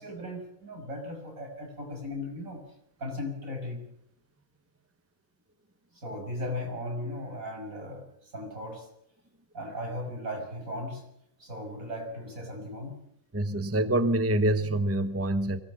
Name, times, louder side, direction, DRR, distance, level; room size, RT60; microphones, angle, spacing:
voice 1, 0.0-2.6 3.0-3.9 5.9-8.9 9.5-11.0 11.4-13.0, left 1 dB, 80° right, 2 dB, 6.4 m, -37 dB
voice 2, 13.3-15.6, right 1 dB, 10° right, 11 dB, 0.9 m, -26 dB
23.5 x 17.5 x 7.1 m, 0.73 s
omnidirectional pair, 1.4 m